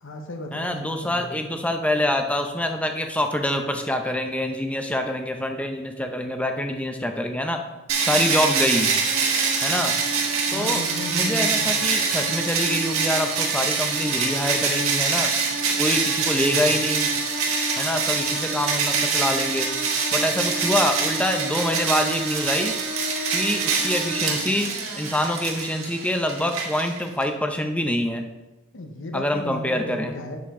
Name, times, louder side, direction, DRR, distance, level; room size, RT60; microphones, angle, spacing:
voice 1, 0.0-1.4 10.5-11.9 16.4-16.7 28.7-30.4, left 1 dB, 65° left, 4 dB, 1.0 m, -35 dB
voice 2, 0.5-7.6 8.0-8.9 9.6-10.0 10.5-10.8 11.1-15.3 15.8-17.1 17.8-19.7 20.1-22.7 23.3-24.7 25.0-28.3 29.1-30.2, left 1 dB, 5° left, 5 dB, 0.7 m, -25 dB
sound 1, 7.9-27.2, right 5 dB, 85° right, 1.5 m, -24 dB
8.4 x 6.8 x 3.7 m, 1.0 s
head